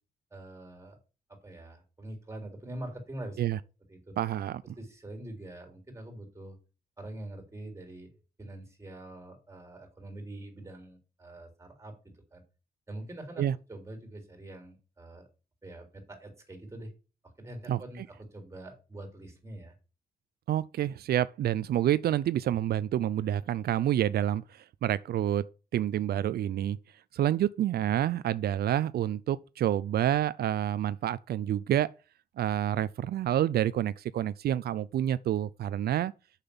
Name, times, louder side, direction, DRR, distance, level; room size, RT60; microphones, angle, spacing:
voice 1, 0.3-1.0 1.4-3.4 3.9-4.0 4.8-6.6 7.0-8.1 8.4-12.4 12.9-13.4 13.7-15.3 15.6-16.9 17.4-18.0 18.3-19.7, right 1 dB, 20° right, 3.5 m, -44 dB
voice 2, 4.2-4.7 13.4-13.6 17.7-18.1 20.5-25.5 25.7-26.8 27.1-31.9 32.4-36.1, right 11 dB, 85° right, 0.4 m, -28 dB
6.8 x 5.7 x 7.0 m
cardioid pair, 95°, 16 cm